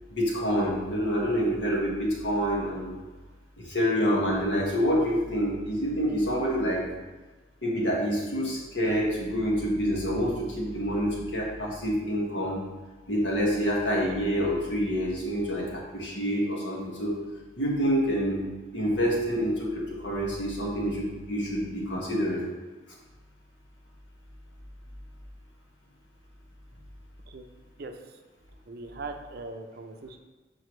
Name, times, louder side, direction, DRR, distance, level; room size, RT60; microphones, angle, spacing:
voice 1, 0.1-2.9 3.6-6.8 7.6-12.6 13.1-17.2 17.6-18.4 18.7-22.5, equal, 80° left, -4 dB, 1.6 m, -27 dB
voice 2, 27.8-28.2 28.7-30.2, right 3 dB, 55° right, 5 dB, 0.5 m, -40 dB
6.2 x 4.8 x 3.2 m, 1.3 s
head